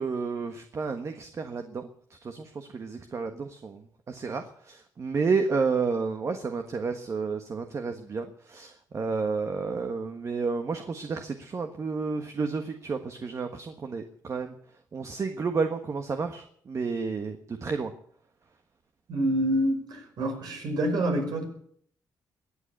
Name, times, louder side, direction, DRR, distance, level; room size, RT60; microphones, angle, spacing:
voice 1, 0.0-14.5 14.9-17.9, right 4 dB, 40° right, 6 dB, 1.5 m, -31 dB
voice 2, 19.1-21.5, right 1 dB, 70° right, 3 dB, 5.3 m, -27 dB
21.5 x 8.0 x 8.4 m, 0.64 s
cardioid pair, 100°, 7 cm